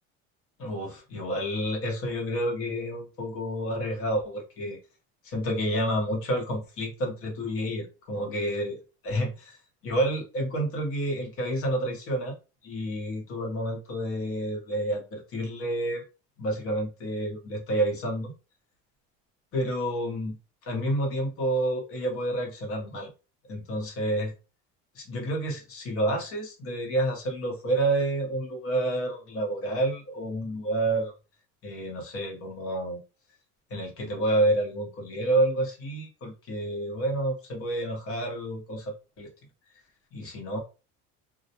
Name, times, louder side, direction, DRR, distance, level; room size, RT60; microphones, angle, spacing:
voice 1, 0.6-4.8 5.2-8.8 9.0-9.6 9.8-12.3 12.6-16.0 16.4-18.3 19.5-23.1 23.5-24.3 24.9-31.1 31.6-33.0 33.7-39.3 40.1-40.6, right 1 dB, 45° left, 0.9 m, -29 dB
2.2 x 2.0 x 2.7 m
cardioid pair, 140°, 32 cm